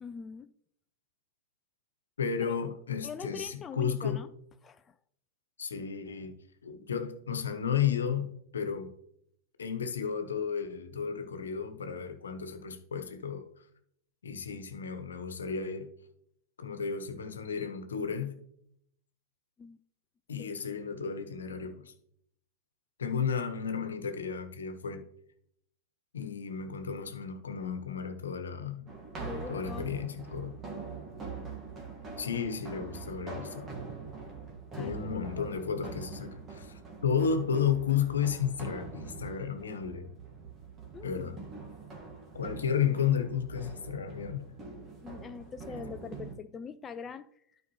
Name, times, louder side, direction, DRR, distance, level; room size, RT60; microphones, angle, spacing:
voice 1, 0.0-0.5 2.5-2.6 3.0-4.3 4.6-4.9 19.6-19.8 20.4-20.5 29.2-29.9 34.7-35.5 40.9-41.4 45.0-47.6, left 6 dB, 25° left, 0.4 m, -43 dB
voice 2, 2.2-4.2 5.6-6.4 6.6-8.9 9.6-13.4 14.2-15.9 16.6-18.4 20.3-21.9 23.0-25.0 26.1-28.9 29.5-30.6 32.2-33.7 34.8-40.1 41.0-41.4 42.3-44.4, left 7 dB, 80° left, 1.1 m, -33 dB
sound 1, 28.9-46.4, right 4 dB, 30° right, 1.7 m, -44 dB
12.5 x 5.1 x 3.1 m
hypercardioid pair, 100°, 0 cm